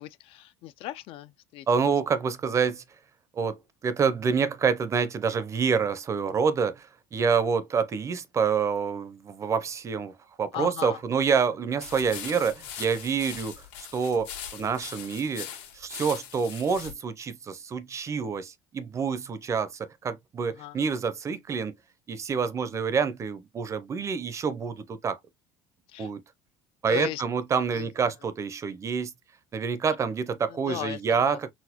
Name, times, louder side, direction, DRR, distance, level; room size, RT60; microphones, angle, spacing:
voice 1, 0.0-1.7 10.5-11.0 20.6-20.8 25.9-26.1 26.9-27.2 27.7-27.9 30.7-31.4, left 14 dB, 60° left, 0.4 m, -36 dB
voice 2, 1.7-2.8 3.3-10.1 10.4-13.6 13.9-15.5 15.7-21.7 22.1-25.2 26.0-26.2 26.8-29.1 29.5-31.5, right 6 dB, 30° right, 0.5 m, -27 dB
sound 1, 11.8-16.9, left 9 dB, 80° left, 1.1 m, -41 dB
4.1 x 2.1 x 2.8 m
cardioid pair, 120°, 11 cm